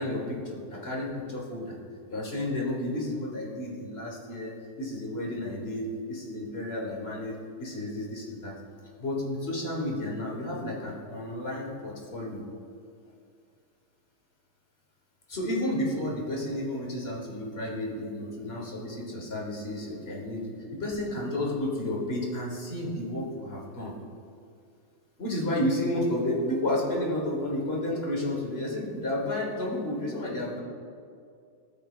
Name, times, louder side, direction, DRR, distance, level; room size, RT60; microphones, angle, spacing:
voice 1, 0.0-1.7 2.1-8.6 9.0-12.5 15.3-23.9 25.2-30.6, left 1 dB, 35° left, -2 dB, 1.2 m, -32 dB
14.5 x 5.4 x 2.4 m, 2.3 s
omnidirectional pair, 2.3 m